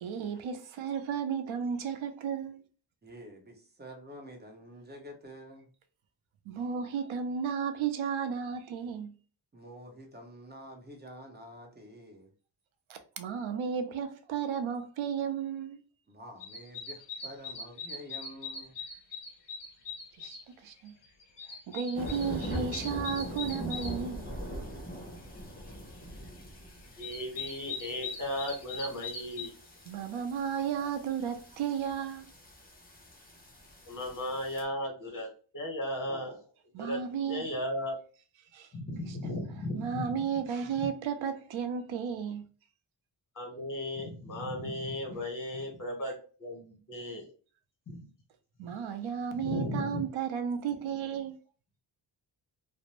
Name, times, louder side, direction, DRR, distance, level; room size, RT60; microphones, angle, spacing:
voice 1, 0.0-2.6 6.5-9.1 12.9-15.8 20.2-20.4 20.6-20.9 21.7-24.3 29.9-32.3 36.7-37.4 38.5-38.7 39.7-42.4 48.6-51.3, right 7 dB, 90° right, 0.6 m, -33 dB
voice 2, 3.0-5.7 9.5-12.3 16.1-18.8, equal, 20° right, 0.8 m, -48 dB
sound 1, 16.4-20.4 20.9-23.9 26.4-26.5 26.8-29.5, left 4 dB, 60° left, 0.7 m, -41 dB
sound 2, 21.9-34.6, equal, 20° left, 0.7 m, -43 dB
voice 3, 27.0-29.5 33.8-36.4 36.8-37.0 37.3-38.0 38.7-40.2 40.8-40.9 43.3-46.1 46.4-47.3 47.9-48.0 48.7-48.8 49.3-50.0, left 1 dB, 40° left, 1.3 m, -36 dB
2.5 x 2.0 x 2.9 m
wide cardioid pair, 100°, 46 cm